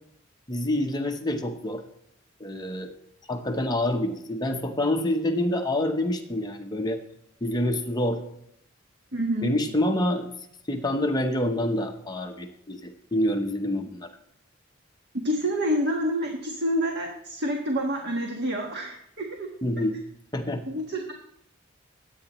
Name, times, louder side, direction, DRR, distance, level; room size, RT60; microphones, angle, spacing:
voice 1, 0.5-1.8 2.4-2.9 3.3-7.0 7.4-8.2 9.4-10.3 10.7-14.1 19.6-20.0 20.3-20.6, left 1 dB, 20° left, 4 dB, 0.9 m, -27 dB
voice 2, 9.1-9.5 15.2-19.5 20.7-21.1, equal, 55° right, 1 dB, 1.4 m, -28 dB
23.0 x 8.8 x 3.1 m, 0.74 s
head